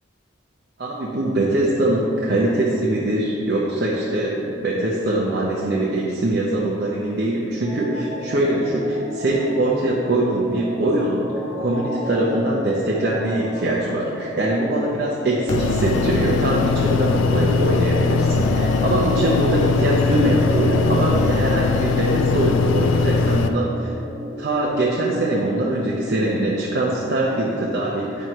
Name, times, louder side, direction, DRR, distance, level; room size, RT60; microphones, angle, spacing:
voice 1, 0.8-11.2 11.6-23.9 24.4-28.3, right 1 dB, 55° right, -5 dB, 0.7 m, -22 dB
sound 1, 7.6-26.6, equal, 35° right, 1.1 m, -33 dB
sound 2, 15.5-23.5, left 4 dB, 75° left, 0.4 m, -20 dB
8.8 x 6.1 x 3.1 m, 2.7 s
head